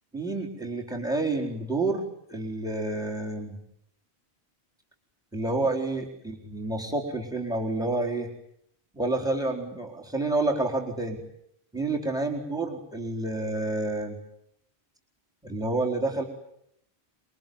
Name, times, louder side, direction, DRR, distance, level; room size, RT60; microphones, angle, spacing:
voice 1, 0.1-3.6 5.3-8.3 8.9-11.2 11.7-14.2 15.4-16.2, right 2 dB, 5° right, 0 dB, 4.3 m, -29 dB
27.0 x 23.0 x 9.5 m, 0.73 s
omnidirectional pair, 1.1 m